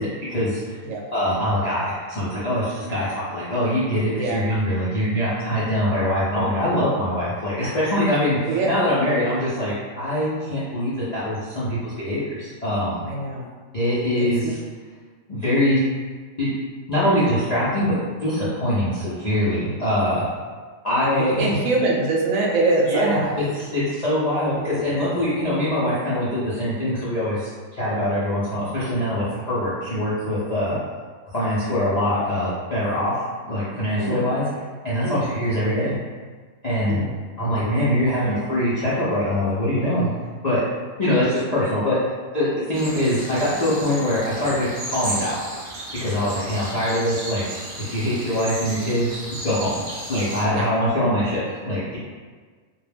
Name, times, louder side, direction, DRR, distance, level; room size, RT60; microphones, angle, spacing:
voice 1, 0.0-0.8 1.1-13.0 13.7-14.6 15.3-15.8 16.4-16.5 16.9-20.3 20.8-21.5 22.9-30.8 31.3-34.4 34.8-35.9 36.6-37.1 37.4-40.1 40.4-40.6 41.0-42.0 42.3-45.4 46.0-49.7 50.1-52.0, left 1 dB, 60° left, -10 dB, 0.4 m, -23 dB
voice 2, 13.1-13.5 14.1-14.5 21.0-23.4 34.0-34.2 35.0-35.2 36.9-37.1 41.1-41.3 50.5-50.7, right 2 dB, 80° right, -1 dB, 1.0 m, -24 dB
sound 1, 42.7-50.4, right 1 dB, 55° right, 0.5 m, -34 dB
2.2 x 2.2 x 3.3 m, 1.5 s
omnidirectional pair, 1.4 m